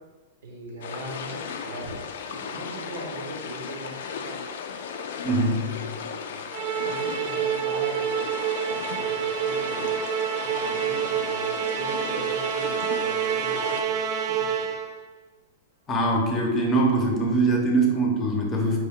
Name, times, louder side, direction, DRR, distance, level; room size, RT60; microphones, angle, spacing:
voice 1, 0.4-1.9 2.2-3.9 4.2-4.4 5.5-6.4 6.8-8.3 8.7-9.9 10.4-14.7, right 1 dB, 75° right, 0 dB, 1.0 m, -40 dB
sound 1, 0.8-13.8, left 6 dB, 70° left, 0.3 m, -36 dB
voice 2, 5.2-5.8 15.9-18.9, right 2 dB, 25° left, 0 dB, 0.7 m, -23 dB
Musical instrument, 6.5-15.0, right 8 dB, 40° right, 0.3 m, -27 dB
4.7 x 2.2 x 3.6 m, 1.3 s
hypercardioid pair, 135°, 0 cm